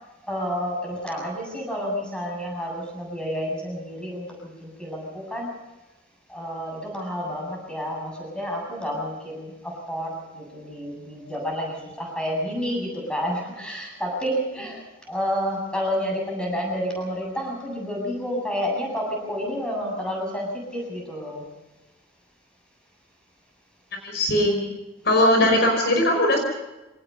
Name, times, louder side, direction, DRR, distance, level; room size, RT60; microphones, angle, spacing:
voice 1, 0.2-5.5 6.3-14.8 15.1-21.4, equal, 5° left, 0 dB, 7.7 m, -30 dB
voice 2, 24.0-24.7 25.0-26.4, left 1 dB, 50° left, 3 dB, 5.3 m, -19 dB
25.5 x 19.5 x 5.6 m, 1.0 s
head